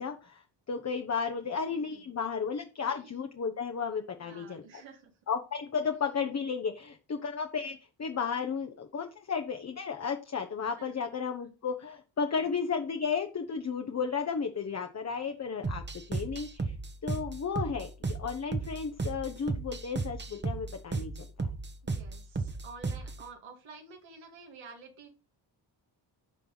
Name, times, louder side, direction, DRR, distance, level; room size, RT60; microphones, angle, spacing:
voice 1, 0.0-4.6 5.3-15.8 16.1-16.7 17.0-21.1 21.4-21.5, left 6 dB, 35° left, 5 dB, 1.0 m, -33 dB
voice 2, 1.7-2.1 2.8-3.2 4.2-5.1 5.9-6.1 10.8-10.9 12.4-12.5 21.8-25.1, right 5 dB, 85° right, 2 dB, 2.2 m, -50 dB
sound 1, 15.6-23.2, right 3 dB, 25° right, 1.0 m, -35 dB
14.0 x 5.4 x 4.0 m, 0.33 s
wide cardioid pair, 125°, 46 cm